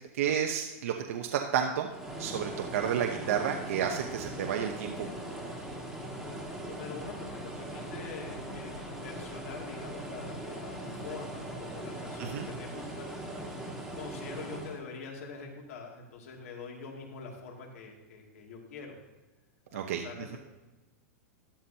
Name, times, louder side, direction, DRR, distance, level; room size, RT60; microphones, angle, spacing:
voice 1, 0.2-1.9 2.2-5.1 12.2-12.5 19.7-20.0, right 8 dB, 60° right, 3 dB, 0.9 m, -31 dB
sound 1, 1.9-14.8, right 1 dB, ahead, 1.6 m, -40 dB
voice 2, 6.6-13.2 14.0-19.0 19.7-20.4, left 5 dB, 65° left, 0 dB, 2.6 m, -44 dB
13.0 x 11.5 x 2.9 m, 1.1 s
supercardioid pair, 170°, 8 cm